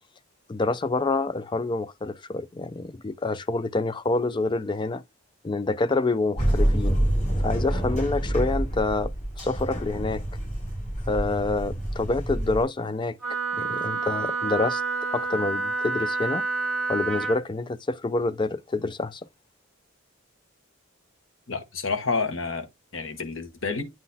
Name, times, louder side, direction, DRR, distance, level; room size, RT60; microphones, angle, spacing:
voice 1, 0.5-5.0 5.4-7.0 7.4-9.1 9.4-10.2 11.1-13.2 13.6-14.8 15.1-16.4 16.9-19.2, left 3 dB, 25° left, 0.4 m, -27 dB
sound 1, 6.4-12.6, right 1 dB, 40° left, 4.1 m, -27 dB
Wind instrument woodwind instrument, 13.2-17.4, right 3 dB, 5° left, 2.1 m, -28 dB
voice 2, 21.5-22.7 22.9-23.9, left 4 dB, 75° left, 1.2 m, -29 dB
9.0 x 3.8 x 2.7 m
head